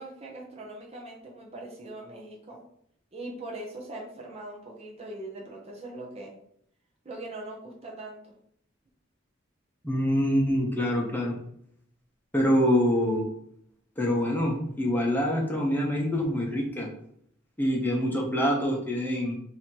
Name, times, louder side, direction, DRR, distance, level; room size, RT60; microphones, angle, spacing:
voice 1, 0.0-2.6 3.1-6.3 7.0-8.3, right 2 dB, 30° right, -2 dB, 0.8 m, -41 dB
voice 2, 9.8-11.3 12.3-13.2 14.0-16.9 17.6-19.4, equal, 10° left, -2 dB, 0.9 m, -25 dB
3.2 x 2.8 x 4.5 m, 0.68 s
head